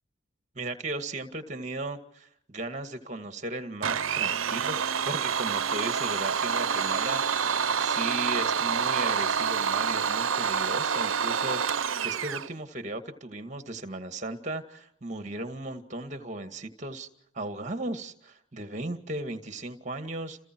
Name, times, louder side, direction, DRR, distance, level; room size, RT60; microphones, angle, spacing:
voice 1, 0.6-17.1 17.3-20.5, right 2 dB, 35° right, 8 dB, 2.1 m, -36 dB
Domestic sounds home sounds, 3.8-12.5, right 7 dB, 85° right, 0.8 m, -27 dB
30.0 x 29.0 x 4.7 m, 0.76 s
head